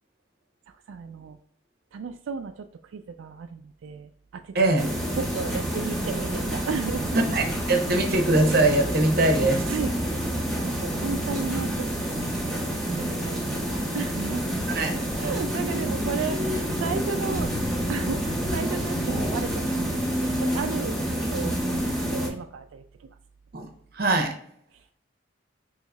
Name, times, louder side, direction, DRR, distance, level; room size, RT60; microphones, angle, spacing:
voice 1, 0.9-1.4 1.9-2.7 2.9-4.5 5.2-7.2 9.7-9.9 10.6-11.9 12.4-14.5 15.2-17.5 17.9-20.1 20.4-21.0 21.3-21.8 22.1-22.8, right 5 dB, 90° right, 6 dB, 0.3 m, -34 dB
voice 2, 4.5-4.9 7.1-9.7 14.7-14.9 23.5-23.7 23.9-24.3, right 2 dB, 50° right, 4 dB, 0.8 m, -22 dB
sound 1, 4.8-22.3, equal, ahead, 1.0 m, -28 dB
5.4 x 3.0 x 2.3 m, 0.63 s
head